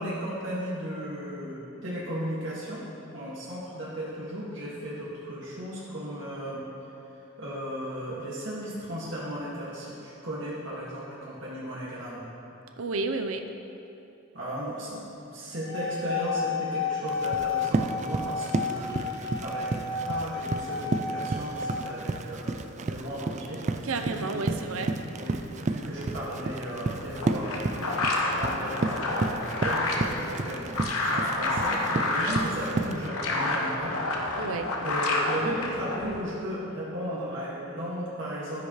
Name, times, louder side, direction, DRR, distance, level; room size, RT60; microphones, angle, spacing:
voice 1, 0.0-2.8 3.1-6.6 7.4-12.2 14.3-15.0 15.3-19.7 20.1-24.8 25.2-30.7 31.1-33.9 34.8-38.6, equal, 60° right, -8 dB, 1.9 m, -35 dB
voice 2, 12.8-13.4 23.8-24.9 34.3-34.7, right 3 dB, 80° right, 6 dB, 0.6 m, -31 dB
sound 1, 15.5-21.7, left 5 dB, 55° left, 1.7 m, -32 dB
Run, 17.1-33.1, right 3 dB, 35° right, 0.4 m, -32 dB
sound 2, 27.0-36.2, left 2 dB, 90° left, 1.1 m, -29 dB
12.0 x 10.0 x 3.2 m, 2.8 s
head